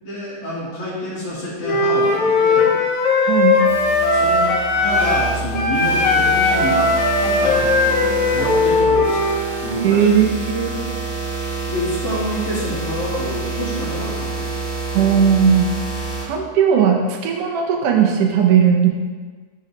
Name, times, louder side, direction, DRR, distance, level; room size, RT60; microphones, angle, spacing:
voice 1, 0.0-2.8 4.1-6.9 7.2-10.1 11.7-14.5, left 1 dB, 50° left, -8 dB, 2.5 m, -27 dB
Wind instrument woodwind instrument, 1.6-5.3 5.5-9.4, left 3 dB, 65° left, 2.5 m, -18 dB
voice 2, 3.2-3.6 9.8-11.0 14.9-15.7 16.2-18.9, right 7 dB, 85° right, 1 dB, 1.3 m, -17 dB
sound 1, 3.7-16.2, right 3 dB, 25° right, 1.7 m, -28 dB
11.5 x 4.1 x 3.2 m, 1.4 s
omnidirectional pair, 3.8 m